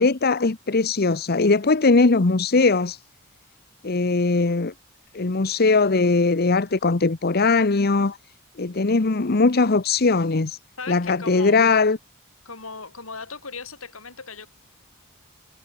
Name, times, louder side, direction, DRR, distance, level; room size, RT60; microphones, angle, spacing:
voice 1, 0.0-3.0 3.8-4.7 5.1-8.2 8.6-10.6 10.9-12.0, left 3 dB, 50° left, 0.9 m, -20 dB
voice 2, 10.8-11.6 12.4-14.5, left 4 dB, 80° left, 5.6 m, -37 dB
head